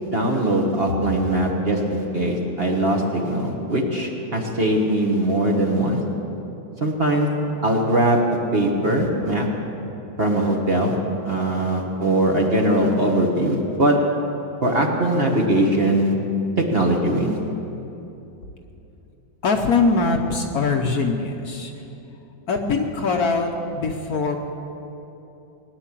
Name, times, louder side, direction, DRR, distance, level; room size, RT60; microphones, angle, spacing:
voice 1, 0.0-6.0 6.8-7.3 7.6-8.2 8.5-9.5 10.2-11.0 11.2-14.0 14.6-16.1 16.6-17.4, right 1 dB, 35° right, 0 dB, 1.4 m, -21 dB
voice 2, 19.4-21.7 22.5-24.4, left 4 dB, 55° left, 3 dB, 1.3 m, -22 dB
19.0 x 9.9 x 7.5 m, 2.9 s
omnidirectional pair, 2.1 m